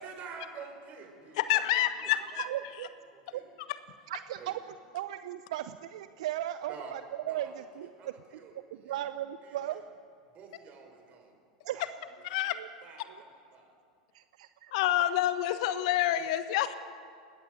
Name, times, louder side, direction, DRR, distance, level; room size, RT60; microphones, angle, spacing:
voice 1, 0.0-2.1 3.1-3.4 4.4-4.6 6.7-6.9 7.2-7.7 8.0-9.1 9.4-9.8 10.3-11.3 11.7-11.9 12.4-12.5 12.8-13.7, right 5 dB, 40° right, 3 dB, 6.0 m, -49 dB
voice 2, 1.4-2.5 12.2-12.6 14.7-16.7, left 13 dB, 60° left, 11 dB, 1.3 m, -28 dB
voice 3, 2.4-2.9 3.3-3.4 4.1-4.5 4.9-7.0 7.3-7.9 8.9-9.8 11.6-11.8 12.6-12.7 14.1-14.7, right 13 dB, 65° right, 12 dB, 0.7 m, -36 dB
20.0 x 18.5 x 8.1 m, 2.2 s
hypercardioid pair, 90°, 4 cm